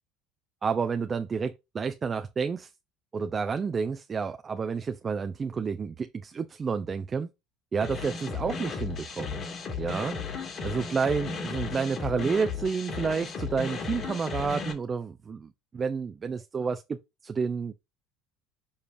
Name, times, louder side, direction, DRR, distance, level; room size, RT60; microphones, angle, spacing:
voice 1, 0.6-2.7 3.1-7.3 7.7-9.4 9.8-10.2 10.6-17.7, right 5 dB, 25° right, 0.6 m, -30 dB
sound 1, 7.8-14.7, left 5 dB, 40° left, 2.4 m, -35 dB
7.0 x 5.0 x 2.7 m
cardioid pair, 130°, 0 cm